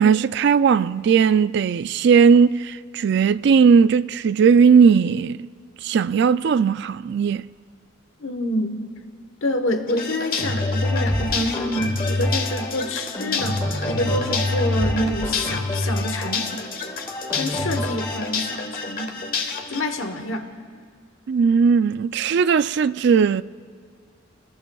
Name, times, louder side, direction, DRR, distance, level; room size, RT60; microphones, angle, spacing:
voice 1, 0.0-5.5 5.8-7.4 21.3-23.4, right 6 dB, 55° right, 0.3 m, -17 dB
voice 2, 8.2-8.9 9.4-16.6 17.4-19.3 19.7-20.5, left 1 dB, 75° left, 1.2 m, -27 dB
sound 1, 9.9-19.8, left 4 dB, 45° left, 1.2 m, -30 dB
sound 2, 10.4-18.3, left 1 dB, 25° left, 2.3 m, -26 dB
29.0 x 20.5 x 2.3 m
head